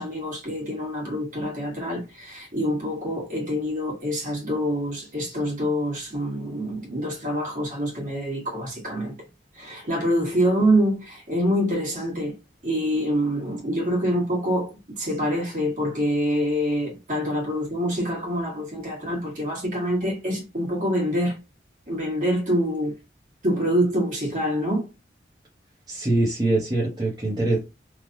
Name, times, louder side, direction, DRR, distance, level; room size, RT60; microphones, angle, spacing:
voice 1, 0.0-9.1 9.5-12.3 12.6-21.4 21.9-22.9 23.4-24.9, equal, 45° right, 1.4 m, -26 dB
voice 2, 25.9-27.6, right 2 dB, 20° right, 0.8 m, -23 dB
3.2 x 2.1 x 2.5 m
head